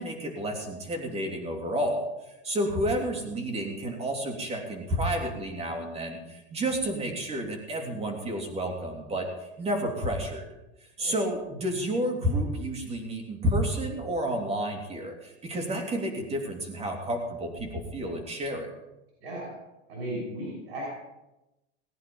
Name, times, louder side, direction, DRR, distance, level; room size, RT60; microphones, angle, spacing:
voice 1, 0.0-2.1 2.4-10.5 11.0-18.7, right 1 dB, 20° right, 2 dB, 3.0 m, -30 dB
voice 2, 19.2-19.6 19.9-20.9, right 1 dB, 85° right, -3 dB, 6.1 m, -36 dB
19.5 x 10.5 x 5.4 m, 0.96 s
supercardioid pair, 150°, 33 cm